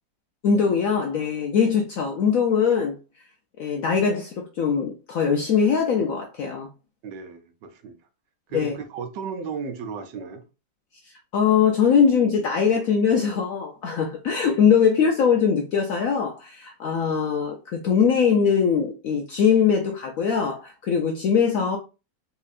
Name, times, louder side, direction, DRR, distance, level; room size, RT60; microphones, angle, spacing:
voice 1, 0.4-2.9 3.6-6.7 8.5-8.7 11.3-21.8, left 6 dB, 70° left, 0.8 m, -21 dB
voice 2, 7.0-8.0 8.5-10.4, right 5 dB, 75° right, 1.2 m, -34 dB
4.2 x 2.8 x 2.4 m
omnidirectional pair, 2.0 m